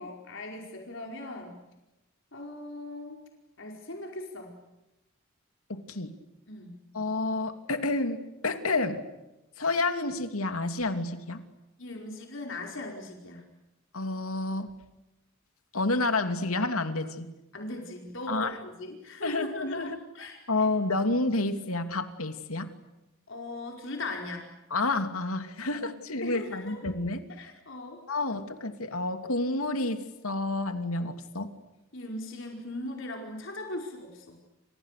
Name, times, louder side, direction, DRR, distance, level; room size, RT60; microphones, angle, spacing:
voice 1, 0.0-1.6 2.3-3.2 3.6-4.5 6.5-6.8 11.8-13.4 17.5-20.4 23.3-24.5 25.7-25.9 26.2-26.8 27.4-28.0 31.9-34.4, left 2 dB, 60° left, 1 dB, 5.0 m, -39 dB
voice 2, 5.7-6.1 6.9-9.0 9.6-11.4 13.9-14.7 15.7-17.3 18.3-18.6 19.2-20.0 20.5-22.7 24.7-27.2 28.1-31.5, left 2 dB, 80° left, 7 dB, 2.9 m, -29 dB
30.0 x 29.5 x 6.8 m, 0.97 s
head